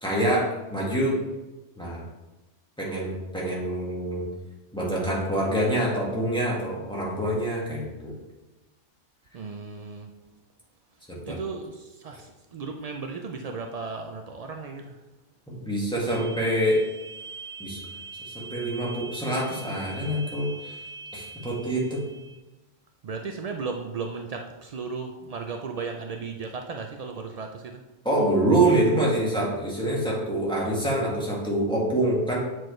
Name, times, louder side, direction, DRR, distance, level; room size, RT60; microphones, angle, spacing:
voice 1, 0.0-1.2 1.8-2.0 2.8-4.3 4.7-8.2 11.1-11.4 15.5-16.8 17.6-17.8 18.3-20.8 21.1-22.0 28.0-32.4, right 1 dB, 5° left, -5 dB, 1.6 m, -26 dB
voice 2, 9.3-10.1 11.2-15.0 23.0-27.8, right 4 dB, 80° right, 3 dB, 0.3 m, -35 dB
sound 1, 16.1-22.4, right 3 dB, 30° left, 0.6 m, -42 dB
7.7 x 4.5 x 3.1 m, 1.1 s
omnidirectional pair, 1.2 m